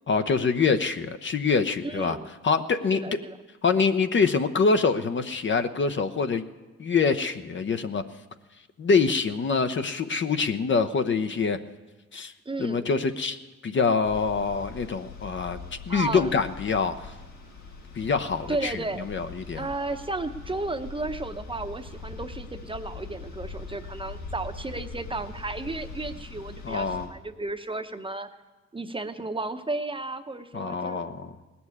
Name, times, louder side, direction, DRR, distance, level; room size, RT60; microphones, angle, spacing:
voice 1, 0.1-2.2 2.4-3.2 3.6-6.4 6.8-8.0 8.8-11.6 12.1-12.3 12.6-13.4 13.6-17.1 18.0-19.7 26.6-27.1 30.5-31.3, left 5 dB, 40° left, 9 dB, 0.8 m, -25 dB
voice 2, 1.8-2.3 2.9-3.4 12.5-12.9 15.9-16.3 18.5-19.1 19.5-28.3 28.7-31.3, right 2 dB, 15° right, 7 dB, 0.9 m, -33 dB
sound 1, 14.0-27.1, left 4 dB, 75° left, 4.2 m, -42 dB
18.0 x 7.0 x 9.7 m, 1.2 s
cardioid pair, 90°, 30 cm